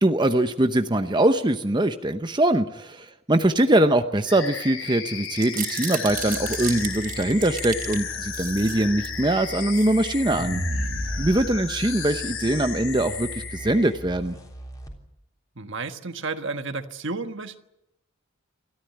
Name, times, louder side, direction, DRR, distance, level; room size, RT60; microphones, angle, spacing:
voice 1, 0.0-10.6 11.2-14.4, right 1 dB, 20° right, 8 dB, 0.8 m, -22 dB
sound 1, 4.2-13.9, left 7 dB, 70° left, 7.2 m, -34 dB
sound 2, 5.2-8.0 8.3-9.2 9.6-9.9 10.3-11.9, right 4 dB, 40° right, 3.4 m, -32 dB
sound 3, 6.1-15.0, right 1 dB, 15° left, 3.6 m, -40 dB
voice 2, 15.6-17.6, right 3 dB, 60° right, 8 dB, 1.5 m, -32 dB
28.5 x 14.0 x 9.2 m, 0.90 s
head